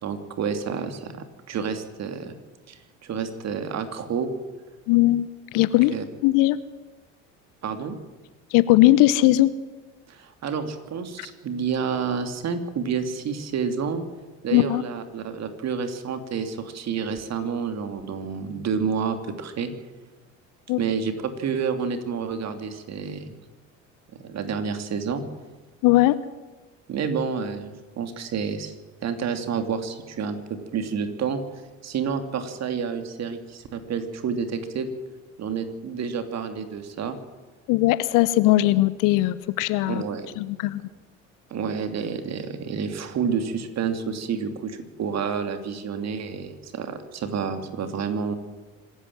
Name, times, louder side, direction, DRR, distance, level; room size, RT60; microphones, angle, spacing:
voice 1, 0.0-2.3 2.7-4.3 5.9-6.0 7.6-8.0 10.1-14.0 14.4-19.7 20.8-23.4 24.2-25.2 26.9-28.7 29.0-31.4 31.8-34.9 35.4-37.2 39.9-40.3 41.5-48.4, right 6 dB, 45° right, 8 dB, 3.0 m, -29 dB
voice 2, 4.9-5.3 5.5-5.9 6.2-6.6 8.5-9.5 14.5-14.8 20.7-20.8 25.8-26.1 37.7-40.0 40.4-40.8, left 16 dB, 55° left, 17 dB, 1.1 m, -19 dB
25.5 x 13.5 x 7.6 m, 1.2 s
figure-of-eight pair, 65°, 38 cm